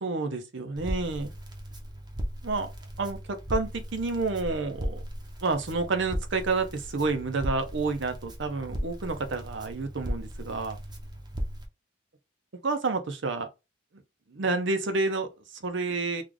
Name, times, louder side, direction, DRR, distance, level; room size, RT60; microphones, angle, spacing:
voice 1, 0.0-1.3 2.4-2.7 3.0-5.0 5.4-10.8 12.6-13.5 14.3-16.2, right 3 dB, 60° right, 0.7 m, -29 dB
Crackle, 0.8-11.7, equal, 20° right, 0.7 m, -37 dB
3.2 x 2.4 x 3.8 m
head